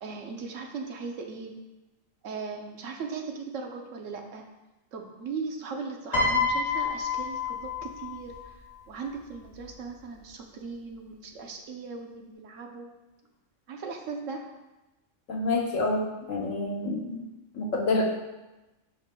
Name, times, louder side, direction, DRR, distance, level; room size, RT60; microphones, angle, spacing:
voice 1, 0.0-1.6 2.2-4.5 4.9-8.5 8.9-12.9 13.7-14.5, right 4 dB, 80° right, 3 dB, 1.1 m, -38 dB
Piano, 6.1-8.5 9.5-9.8, left 4 dB, 30° left, 1.6 m, -28 dB
voice 2, 15.3-17.2 17.5-18.1, left 2 dB, 85° left, 0 dB, 1.4 m, -28 dB
8.8 x 5.6 x 2.2 m, 1.0 s
omnidirectional pair, 1.3 m